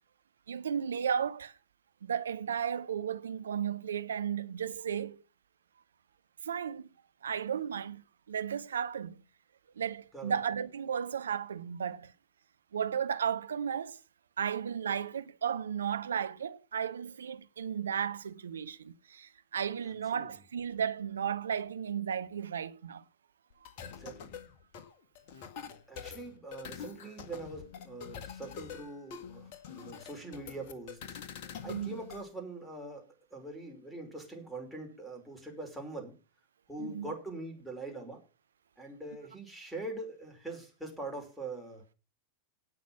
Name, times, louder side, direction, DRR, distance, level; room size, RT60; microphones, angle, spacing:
voice 1, 0.5-1.5 2.0-5.2 6.4-6.9 7.2-9.2 9.8-12.1 12.7-14.0 14.4-23.0 31.6-31.9 36.8-37.1, right 8 dB, 70° right, 0.8 m, -34 dB
voice 2, 19.9-20.3 23.8-24.3 25.6-31.0 31.6-33.0 33.3-36.1 36.7-38.2 38.8-41.8, right 2 dB, ahead, 5.4 m, -43 dB
sound 1, 23.5-32.2, left 7 dB, 50° left, 1.8 m, -46 dB
17.5 x 6.2 x 5.8 m
figure-of-eight pair, 90°, 0 cm